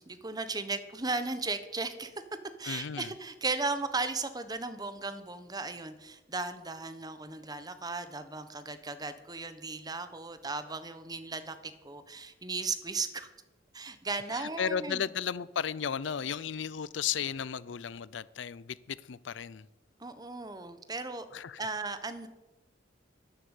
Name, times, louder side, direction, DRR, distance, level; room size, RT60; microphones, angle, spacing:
voice 1, 0.0-2.2 2.6-13.3 13.7-15.0 20.0-21.3 21.6-22.3, right 3 dB, 20° right, 1.2 m, -36 dB
voice 2, 2.6-3.1 14.3-19.7 21.3-21.6, left 7 dB, 70° left, 0.5 m, -34 dB
12.0 x 11.0 x 8.3 m
head